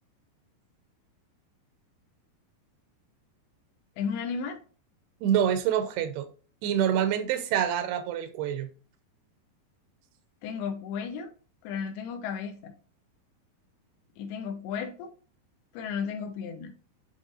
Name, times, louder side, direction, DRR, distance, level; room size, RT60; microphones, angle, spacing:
voice 1, 4.0-4.6 10.4-11.3 11.6-12.7 14.2-15.1 15.7-16.7, left 6 dB, 85° left, 6 dB, 2.9 m, -34 dB
voice 2, 5.2-6.3 6.6-8.7, right 9 dB, 90° right, 9 dB, 2.7 m, -26 dB
10.5 x 3.6 x 2.6 m, 0.39 s
omnidirectional pair, 4.5 m